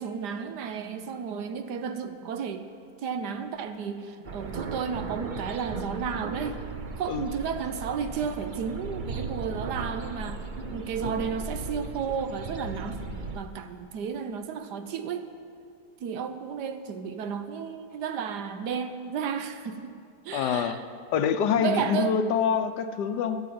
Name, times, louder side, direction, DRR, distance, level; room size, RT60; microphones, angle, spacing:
voice 1, 0.0-2.7 3.0-6.6 7.0-10.4 10.7-13.0 13.3-15.3 16.0-19.9 20.2-20.8 21.6-22.1, right 7 dB, 70° right, 8 dB, 1.4 m, -33 dB
sound 1, 4.3-13.4, right 3 dB, 45° right, 0.6 m, -36 dB
voice 2, 20.3-20.8 21.1-23.4, left 7 dB, 75° left, 9 dB, 1.3 m, -25 dB
13.0 x 8.5 x 8.6 m, 2.4 s
omnidirectional pair, 1.9 m